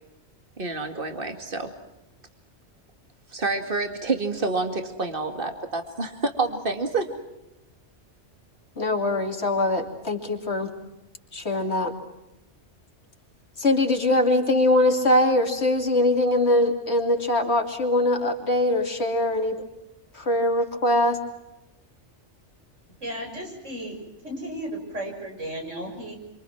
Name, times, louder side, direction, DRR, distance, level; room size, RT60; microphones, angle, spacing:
voice 1, 0.6-1.7 3.3-7.1, right 3 dB, 50° right, 6 dB, 2.6 m, -28 dB
voice 2, 8.8-10.7 11.3-11.9 13.6-19.6 20.1-21.2, left 1 dB, 65° left, 3 dB, 3.2 m, -22 dB
voice 3, 23.0-24.0 24.2-26.1, right 1 dB, 85° right, 1 dB, 7.0 m, -34 dB
27.5 x 25.5 x 6.1 m, 0.92 s
omnidirectional pair, 1.2 m